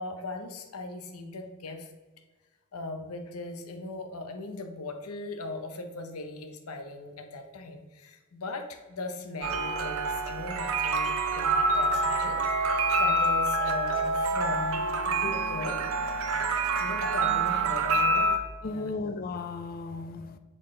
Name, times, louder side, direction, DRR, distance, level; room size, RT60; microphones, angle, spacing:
voice 1, 0.0-1.9 2.7-15.8 16.8-18.3 18.6-18.9, left 3 dB, 85° left, 0.7 m, -38 dB
sound 1, 9.4-18.4, right 2 dB, 65° right, 0.6 m, -27 dB
voice 2, 18.6-20.4, left 3 dB, 40° left, 0.4 m, -35 dB
6.5 x 3.9 x 3.7 m
head